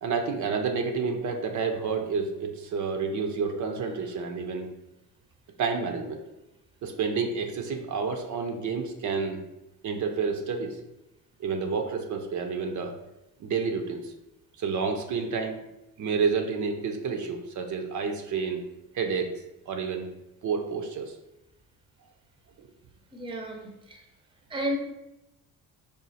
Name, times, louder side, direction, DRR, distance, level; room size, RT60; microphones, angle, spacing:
voice 1, 0.0-4.7 5.6-6.2 6.8-9.4 9.8-10.8 11.4-13.0 13.4-14.1 14.6-15.6 16.0-18.6 18.9-20.1 20.4-21.2 22.6-22.7, right 5 dB, 60° right, 5 dB, 0.6 m, -29 dB
voice 2, 23.1-24.0 24.5-24.8, equal, 15° right, 3 dB, 0.6 m, -32 dB
5.0 x 2.4 x 4.0 m, 0.93 s
cardioid pair, 135°, 34 cm